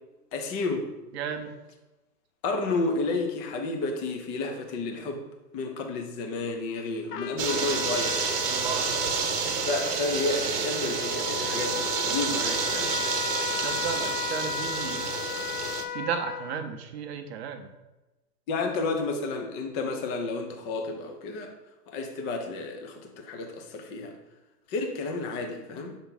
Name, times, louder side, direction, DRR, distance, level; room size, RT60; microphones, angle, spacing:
voice 1, 0.3-0.9 2.4-5.3 5.5-8.3 9.6-12.9 18.5-21.5 21.9-24.1 24.7-26.0, left 3 dB, 20° left, 3 dB, 0.5 m, -31 dB
voice 2, 1.1-1.5 8.5-8.9 13.6-15.2 15.9-17.7, right 7 dB, 40° right, 6 dB, 0.7 m, -34 dB
Trumpet, 7.1-16.7, left 9 dB, 70° left, 0.7 m, -35 dB
sound 1, 7.4-15.8, right 6 dB, 70° right, 1.1 m, -29 dB
6.8 x 3.5 x 4.0 m, 1.0 s
hypercardioid pair, 120°, 49 cm